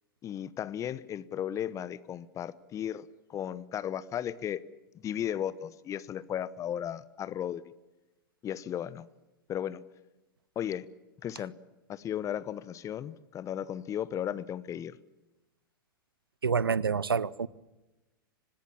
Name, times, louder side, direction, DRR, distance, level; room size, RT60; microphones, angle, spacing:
voice 1, 0.2-4.6 5.0-7.6 8.4-9.1 9.5-9.8 10.5-10.8 11.2-11.5 11.9-15.0, left 10 dB, 25° left, 0.9 m, -35 dB
voice 2, 16.4-17.5, right 6 dB, 85° right, 0.7 m, -27 dB
25.0 x 19.0 x 7.3 m
hypercardioid pair, 100°, 12 cm